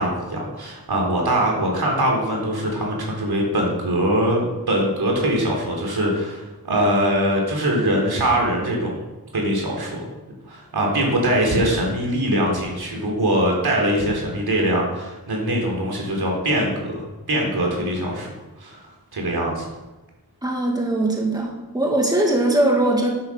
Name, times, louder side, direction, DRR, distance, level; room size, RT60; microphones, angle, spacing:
voice 1, 0.0-8.9 9.3-10.0 10.5-18.3 18.6-19.7, right 1 dB, 75° right, -1 dB, 3.9 m, -22 dB
voice 2, 20.4-23.1, right 1 dB, 10° right, -1 dB, 2.1 m, -20 dB
10.0 x 9.1 x 6.4 m, 1.1 s
wide cardioid pair, 100°, 38 cm